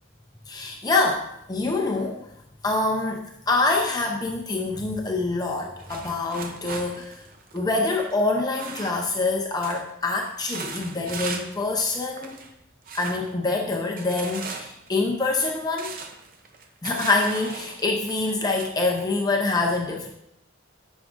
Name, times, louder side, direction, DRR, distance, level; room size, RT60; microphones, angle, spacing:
voice 1, 0.5-2.2 2.6-7.2 7.5-12.3 12.9-16.0 16.8-20.1, left 3 dB, 20° left, 0 dB, 0.6 m, -25 dB
sound 1, 5.8-9.3 9.6-9.9 10.2-11.6 11.9-12.5 12.9-13.3 14.0-18.7, right 4 dB, 45° right, 0.6 m, -38 dB
9.6 x 6.1 x 2.5 m, 0.79 s
head